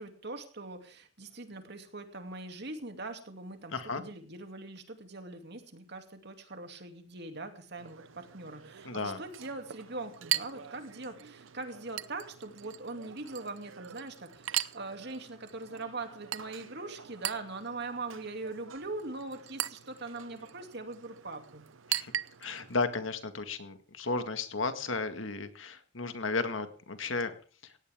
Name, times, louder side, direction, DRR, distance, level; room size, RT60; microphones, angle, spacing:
voice 1, 0.0-21.7, right 3 dB, 55° right, 6 dB, 2.7 m, -42 dB
voice 2, 3.7-4.0 8.9-9.2 21.9-22.1 22.4-27.3, left 3 dB, 75° left, 9 dB, 1.9 m, -34 dB
Chink clink, 7.8-22.7, right 12 dB, 75° right, 0.7 m, -40 dB
18.0 x 16.5 x 3.7 m, 0.40 s
head